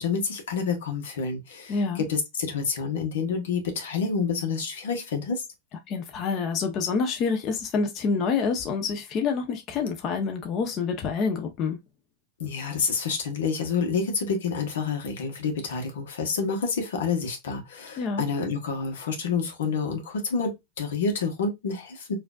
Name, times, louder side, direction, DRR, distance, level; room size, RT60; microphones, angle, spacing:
voice 1, 0.0-5.4 12.4-20.5 20.8-22.1, left 5 dB, 80° left, 1.2 m, -28 dB
voice 2, 1.7-2.0 5.9-11.8 18.0-18.2, left 5 dB, 40° left, 0.9 m, -27 dB
4.7 x 2.7 x 2.4 m
hypercardioid pair, 115°, 0 cm